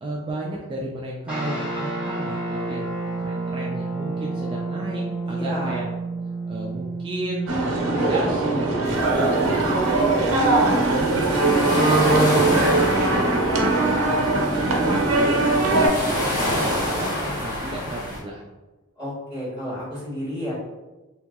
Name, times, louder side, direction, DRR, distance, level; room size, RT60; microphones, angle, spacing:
voice 1, 0.0-5.9 6.5-13.5 13.8-18.4, right 1 dB, 25° right, -4 dB, 0.3 m, -33 dB
sound 1, 1.3-11.0, right 3 dB, 5° right, 0.9 m, -31 dB
voice 2, 5.2-5.8 19.0-20.5, equal, 20° left, -10 dB, 1.5 m, -31 dB
sound 2, 7.5-15.9, right 2 dB, 80° right, 0.6 m, -20 dB
sound 3, 8.8-18.2, left 1 dB, 45° left, 1.4 m, -29 dB
2.8 x 2.7 x 2.3 m, 1.1 s
head